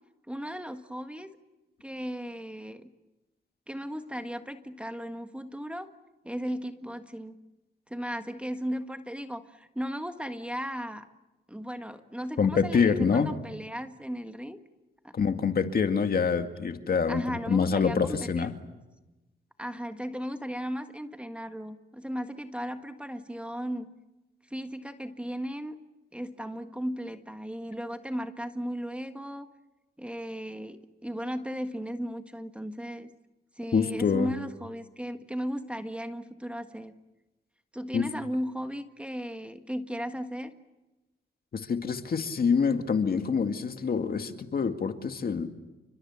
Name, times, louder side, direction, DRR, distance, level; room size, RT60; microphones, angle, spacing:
voice 1, 0.3-1.3 1.8-2.9 3.7-5.9 6.2-7.4 7.9-11.1 11.5-14.6 15.0-15.1 17.1-18.5 19.6-23.9 24.5-25.8 26.1-29.5 30.0-33.1 33.5-36.9 37.7-40.5, equal, 5° right, 7 dB, 1.6 m, -36 dB
voice 2, 12.4-13.3 15.1-17.2 17.5-18.5 33.7-34.3 37.9-38.1 41.5-45.5, left 6 dB, 50° left, 6 dB, 2.2 m, -26 dB
30.0 x 25.0 x 7.4 m, 1.0 s
cardioid pair, 90°, 20 cm